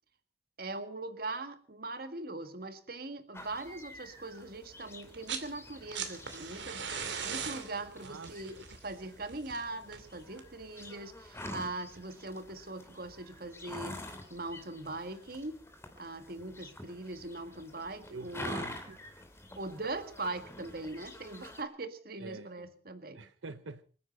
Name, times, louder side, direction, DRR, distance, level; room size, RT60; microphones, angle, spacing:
voice 1, 0.6-14.0 14.3-15.6 16.0-18.7 19.6-23.2, right 2 dB, 50° right, 1.8 m, -41 dB
sound 1, 3.3-21.6, left 1 dB, 15° left, 2.7 m, -48 dB
sound 2, 5.0-5.5 5.8-10.6 11.9-12.0, right 6 dB, 70° right, 2.6 m, -40 dB
voice 2, 8.0-8.6 18.1-19.0 22.2-22.5 23.1-23.8, right 4 dB, 85° right, 0.8 m, -45 dB
26.5 x 9.7 x 5.4 m
head